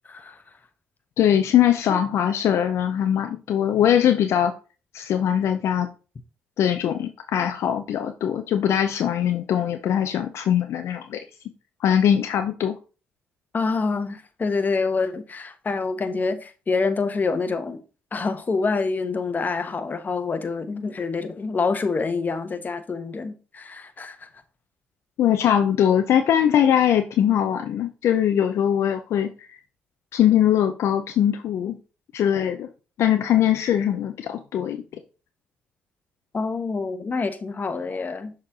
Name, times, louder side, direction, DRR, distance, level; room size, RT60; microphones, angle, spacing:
voice 1, 1.2-4.5 4.9-5.9 6.6-11.2 11.8-12.8 25.2-29.3 30.1-31.8 32.1-32.7 33.0-34.8, left 10 dB, 65° left, 0.6 m, -21 dB
voice 2, 13.5-17.8 18.1-24.3 36.3-38.3, left 4 dB, 35° left, 1.1 m, -26 dB
6.6 x 4.4 x 3.6 m
hypercardioid pair, 50°, 5 cm